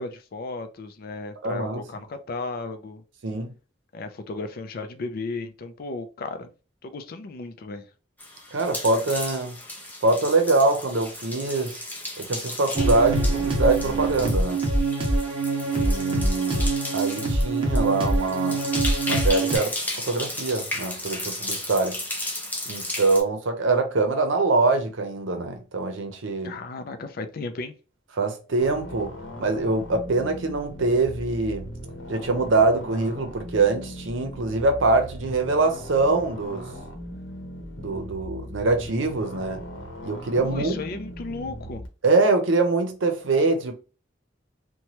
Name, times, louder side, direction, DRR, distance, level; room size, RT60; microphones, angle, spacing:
voice 1, 0.0-3.0 3.9-6.5 6.8-7.8 26.4-27.8 40.4-41.8, left 3 dB, 50° left, 0.4 m, -35 dB
voice 2, 1.4-1.8 3.2-3.5 8.5-9.6 10.0-11.8 12.2-14.6 15.7-16.7 16.9-18.6 19.1-19.7 20.0-22.0 22.7-26.5 28.2-31.7 32.1-36.7 37.8-39.6 40.0-40.8 42.0-43.7, right 3 dB, 75° right, 0.6 m, -24 dB
sound 1, 8.2-23.2, left 1 dB, 10° left, 0.6 m, -34 dB
sound 2, 12.7-19.6, right 2 dB, 30° right, 0.7 m, -24 dB
sound 3, 28.6-41.9, equal, 80° left, 0.9 m, -39 dB
3.0 x 2.2 x 2.7 m
head